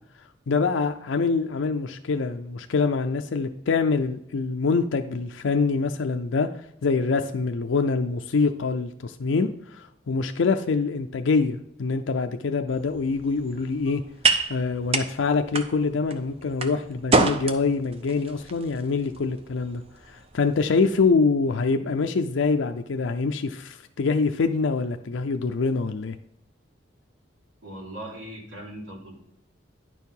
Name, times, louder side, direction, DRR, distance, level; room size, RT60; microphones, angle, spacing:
voice 1, 0.5-6.5 6.8-14.0 14.5-19.8 20.1-26.2, left 4 dB, 80° left, 6 dB, 0.5 m, -25 dB
sound 1, 12.7-21.1, right 3 dB, 30° right, 0.6 m, -29 dB
voice 2, 27.6-29.1, right 1 dB, 85° right, -5 dB, 3.4 m, -39 dB
10.5 x 4.6 x 5.4 m, 0.78 s
head